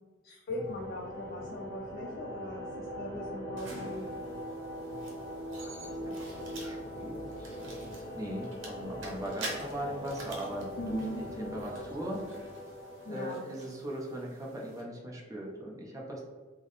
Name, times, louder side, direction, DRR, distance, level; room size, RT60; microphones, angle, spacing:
voice 1, 0.2-4.0 10.8-11.6 13.0-13.4, left 1 dB, 50° left, -2 dB, 0.4 m, -39 dB
sound 1, 0.6-14.1, equal, 20° left, 0.8 m, -41 dB
sound 2, 3.6-14.8, right 2 dB, 70° right, 0.8 m, -48 dB
voice 2, 5.6-12.2 13.1-16.2, right 1 dB, 15° right, -2 dB, 0.5 m, -40 dB
3.5 x 2.0 x 3.8 m, 1.4 s
head